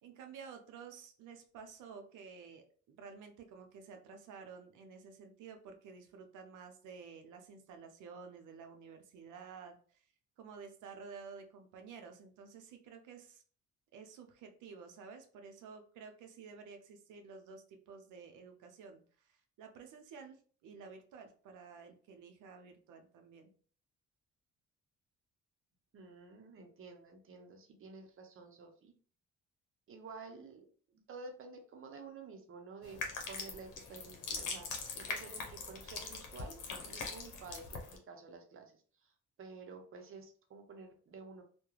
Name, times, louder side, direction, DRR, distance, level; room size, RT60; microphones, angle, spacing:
voice 1, 0.0-10.0 10.4-13.4 13.9-23.5, right 5 dB, 85° right, 5 dB, 0.6 m, -52 dB
voice 2, 25.9-28.9 29.9-33.0 33.3-36.6 36.8-39.1 39.4-41.4, right 4 dB, 45° right, 5 dB, 0.7 m, -51 dB
sound 1, 32.8-38.0, left 4 dB, 90° left, 0.7 m, -42 dB
2.3 x 2.2 x 3.0 m, 0.43 s
cardioid pair, 90°, 30 cm